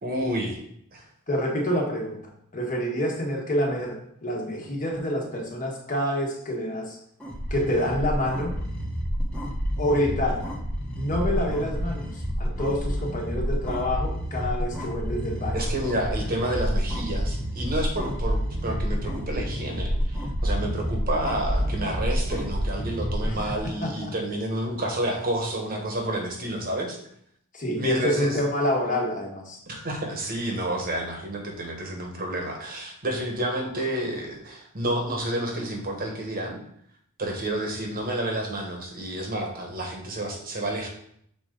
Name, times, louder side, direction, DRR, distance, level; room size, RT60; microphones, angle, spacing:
voice 1, 0.0-0.6 0.9-1.0 15.5-27.0 27.8-28.4 29.7-36.6 37.2-40.9, right 1 dB, 45° right, 2 dB, 1.3 m, -30 dB
voice 2, 1.3-2.2 2.5-7.0 7.5-8.6 9.8-10.4 10.9-15.6 23.6-24.1 27.5-29.6, left 1 dB, 35° left, -1 dB, 1.5 m, -27 dB
sound 1, 7.2-23.6, equal, 5° left, 1.1 m, -29 dB
6.5 x 4.0 x 3.8 m, 0.69 s
head